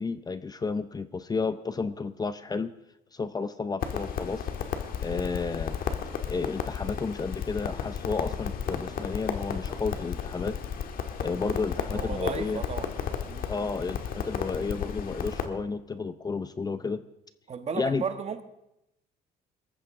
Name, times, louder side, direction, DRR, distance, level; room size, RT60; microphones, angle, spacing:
voice 1, 0.0-2.7 3.1-4.5 5.0-5.7 6.3-10.5 11.2-12.6 13.5-17.0 17.7-18.0, left 4 dB, 25° left, 12 dB, 0.6 m, -32 dB
Crackle, 3.8-15.5, left 7 dB, 60° left, 1.5 m, -33 dB
voice 2, 11.9-12.9 13.3-13.5 17.5-18.4, right 6 dB, 40° right, 8 dB, 1.4 m, -34 dB
20.5 x 14.0 x 3.7 m, 0.84 s
cardioid pair, 110°, 17 cm